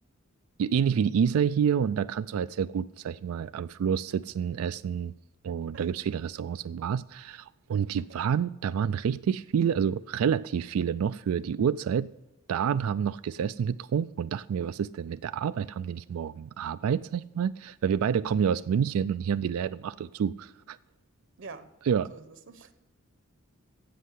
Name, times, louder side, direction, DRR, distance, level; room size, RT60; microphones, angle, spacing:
voice 1, 0.6-5.1 5.4-12.1 12.5-20.8 21.9-22.1, right 7 dB, 85° right, 0.3 m, -28 dB
voice 2, 18.3-18.7 21.4-21.7 22.1-22.7, right 3 dB, 60° right, 0.9 m, -47 dB
15.5 x 5.5 x 8.3 m
head